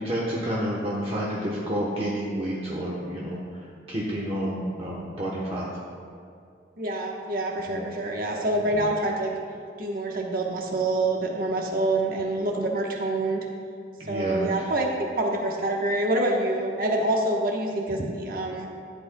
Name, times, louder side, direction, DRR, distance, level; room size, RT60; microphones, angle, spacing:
voice 1, 0.0-5.7 7.7-7.9 8.7-8.9 14.0-14.6, equal, 30° right, -5 dB, 1.0 m, -30 dB
voice 2, 6.8-9.4 9.8-13.4 14.1-14.9 15.2-18.7, right 2 dB, 50° right, 0 dB, 1.2 m, -26 dB
14.0 x 8.2 x 2.3 m, 2.4 s
head